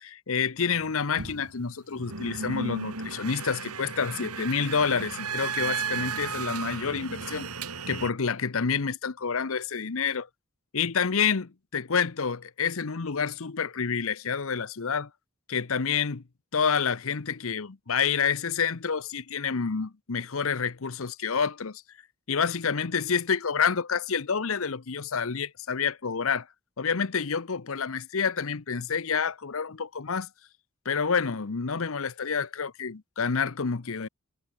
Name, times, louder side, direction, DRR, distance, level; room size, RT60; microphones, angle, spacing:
voice 1, 0.0-7.5 7.9-10.3 10.7-15.1 15.5-16.2 16.5-21.8 22.3-26.5 26.8-30.3 30.8-34.1, left 6 dB, 65° left, 0.8 m, -28 dB
sound 1, 0.6-8.1, right 5 dB, 90° right, 6.1 m, -35 dB
head